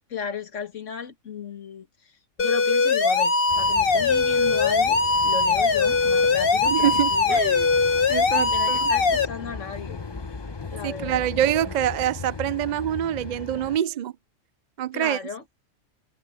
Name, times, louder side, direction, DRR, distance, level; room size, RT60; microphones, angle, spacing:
voice 1, 0.1-2.1 2.4-7.4 8.3-10.0 10.7-11.3 14.9-15.4, left 6 dB, 65° left, 1.9 m, -35 dB
sound 1, 2.4-9.3, left 4 dB, 45° left, 1.4 m, -21 dB
sound 2, 3.5-13.8, left 4 dB, 25° left, 0.7 m, -38 dB
voice 2, 6.6-7.7 8.1-8.9 10.8-14.1 14.8-15.2, right 11 dB, 70° right, 0.4 m, -25 dB
omnidirectional pair, 1.4 m